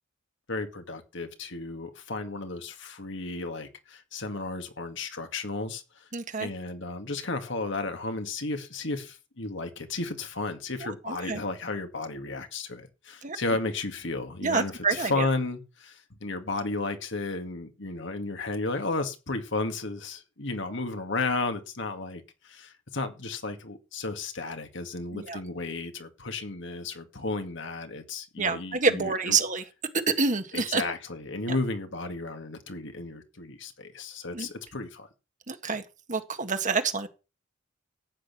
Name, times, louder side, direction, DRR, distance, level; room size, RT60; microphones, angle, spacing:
voice 1, 0.5-6.0 6.4-29.4 30.5-35.1, left 3 dB, 65° left, 2.2 m, -33 dB
voice 2, 6.1-6.5 10.8-11.4 13.2-13.4 14.4-15.3 25.1-25.4 28.4-29.6 30.1-30.8 34.3-34.5 35.5-35.8 36.1-37.1, right 4 dB, 40° right, 1.7 m, -27 dB
14.5 x 9.1 x 6.0 m
head